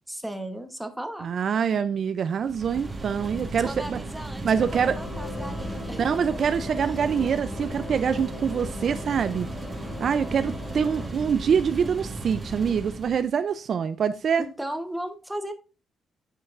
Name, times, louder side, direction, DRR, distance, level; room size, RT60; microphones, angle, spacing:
voice 1, 0.1-1.3 3.6-6.2 6.7-6.8 14.4-15.5, right 1 dB, 5° right, 1.1 m, -36 dB
voice 2, 1.2-4.0 4.4-5.0 5.9-9.5 10.0-14.5, right 7 dB, 45° right, 0.5 m, -25 dB
sound 1, 2.4-13.3, right 2 dB, 20° right, 1.4 m, -36 dB
sound 2, 4.6-11.1, left 4 dB, 40° left, 1.7 m, -40 dB
9.7 x 5.6 x 2.5 m
cardioid pair, 130°, 0 cm